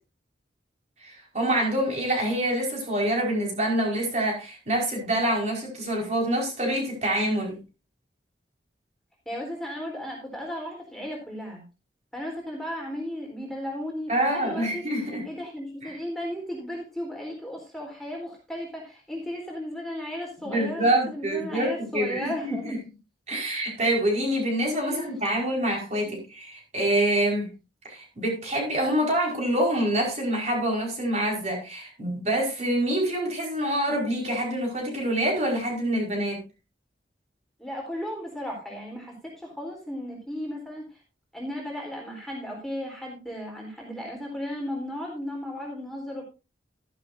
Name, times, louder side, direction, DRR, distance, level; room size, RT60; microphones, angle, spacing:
voice 1, 1.0-7.6 14.1-15.2 15.8-16.0 20.4-22.8 23.3-27.5 27.8-36.4, right 1 dB, 40° right, -1 dB, 4.9 m, -26 dB
voice 2, 9.3-11.6 12.1-14.8 15.2-22.7 24.8-25.1 26.0-26.2 37.6-40.9 41.3-46.2, left 1 dB, ahead, -2 dB, 3.8 m, -35 dB
13.0 x 11.5 x 2.7 m, 0.30 s
head